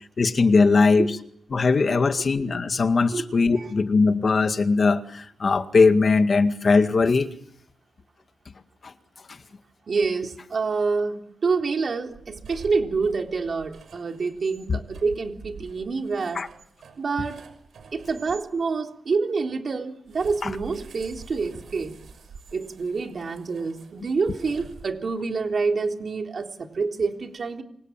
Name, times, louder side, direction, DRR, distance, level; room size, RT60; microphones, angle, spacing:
voice 1, 0.2-1.1 1.5-7.3 8.8-8.9 14.7-14.8 16.4-16.5 20.4-20.5, left 4 dB, 40° left, 2.0 m, -20 dB
voice 2, 9.9-16.4 17.0-17.5 17.9-21.9 22.5-27.6, right 4 dB, 45° right, 3.6 m, -27 dB
sound 1, 12.0-18.5 20.1-25.3, right 5 dB, 70° right, 6.2 m, -47 dB
29.0 x 26.0 x 7.5 m
wide cardioid pair, 155°, 0 cm